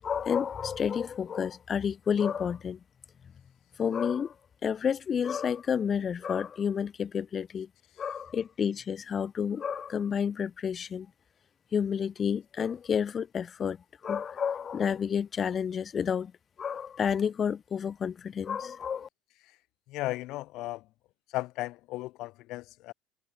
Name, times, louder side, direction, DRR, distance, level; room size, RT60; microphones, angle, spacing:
voice 1, 0.0-2.8 3.8-4.3 4.6-7.7 8.0-11.1 11.7-13.8 14.0-16.3 16.6-19.1, left 7 dB, 35° left, 3.5 m, -30 dB
voice 2, 19.9-20.8 21.3-22.9, left 18 dB, 60° left, 3.1 m, -35 dB
supercardioid pair, 95°, 0 cm